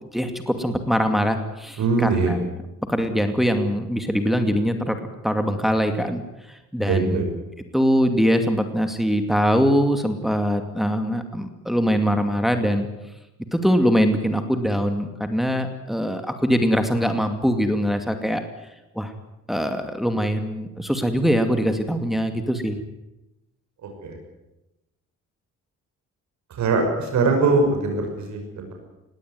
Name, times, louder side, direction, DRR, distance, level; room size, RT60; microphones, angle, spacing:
voice 1, 0.1-2.4 2.9-7.2 7.7-12.9 13.5-18.4 18.9-19.1 19.5-22.8, equal, ahead, 6 dB, 2.4 m, -22 dB
voice 2, 1.8-2.3 6.9-7.2 24.0-24.2 26.5-28.7, right 3 dB, 70° right, 3 dB, 6.1 m, -22 dB
20.0 x 17.5 x 9.7 m, 0.97 s
cardioid pair, 90°, 30 cm